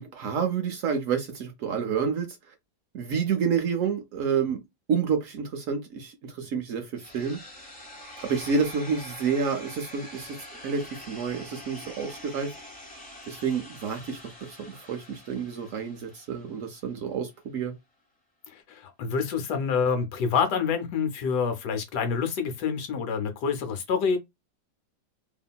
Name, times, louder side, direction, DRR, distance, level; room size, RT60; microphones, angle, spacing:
voice 1, 0.0-2.3 2.9-4.6 4.9-7.4 8.2-10.4 10.6-12.5 13.3-17.7, right 6 dB, 75° right, 0.7 m, -29 dB
sound 1, 7.0-17.0, left 1 dB, 10° left, 0.5 m, -45 dB
voice 2, 18.5-24.2, left 6 dB, 70° left, 1.2 m, -27 dB
2.8 x 2.5 x 2.2 m
omnidirectional pair, 1.9 m